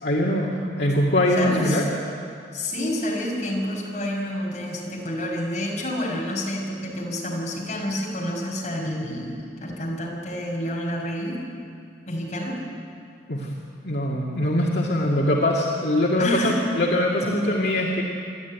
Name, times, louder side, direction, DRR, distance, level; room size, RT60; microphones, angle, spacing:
voice 1, 0.0-1.9 13.3-13.5 13.8-18.0, left 1 dB, 70° left, -3 dB, 2.1 m, -22 dB
voice 2, 1.4-1.8 2.5-11.4 12.1-12.6 15.1-15.3 16.2-16.7, left 1 dB, 40° left, -2 dB, 5.2 m, -28 dB
28.0 x 11.5 x 9.4 m, 2.4 s
head